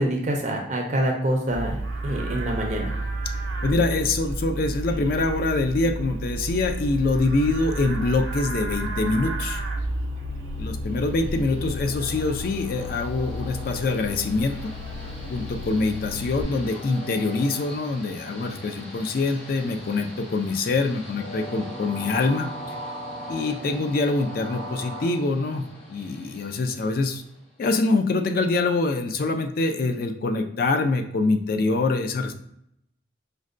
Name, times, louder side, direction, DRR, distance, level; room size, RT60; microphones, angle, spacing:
voice 1, 0.0-1.8 2.0-2.9, right 1 dB, 35° right, 1 dB, 0.4 m, -25 dB
Livestock farm animals working animals, 1.5-16.4, right 1 dB, 85° right, 0.6 m, -31 dB
voice 2, 3.6-9.6 10.6-14.6 15.3-22.5 23.3-25.6 25.9-27.2 27.6-32.3, left 3 dB, 50° left, 6 dB, 0.3 m, -24 dB
Train, 10.8-27.6, equal, 30° left, 1.2 m, -40 dB
5.1 x 2.1 x 2.5 m, 0.76 s
head